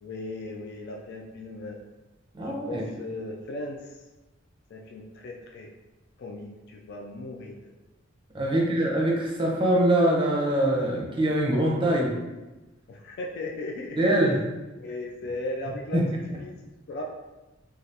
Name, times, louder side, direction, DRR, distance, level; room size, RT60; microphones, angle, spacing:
voice 1, 0.0-1.8 2.4-4.0 4.7-5.7 6.2-7.7 8.5-8.7 12.9-14.1 14.8-16.0 16.4-16.5 16.9-17.1, left 2 dB, 50° left, 0 dB, 0.3 m, -37 dB
voice 2, 2.3-2.8 8.3-12.1 14.0-14.3 15.9-16.0, right 1 dB, 25° right, -2 dB, 0.6 m, -23 dB
3.3 x 2.4 x 2.7 m, 1.1 s
head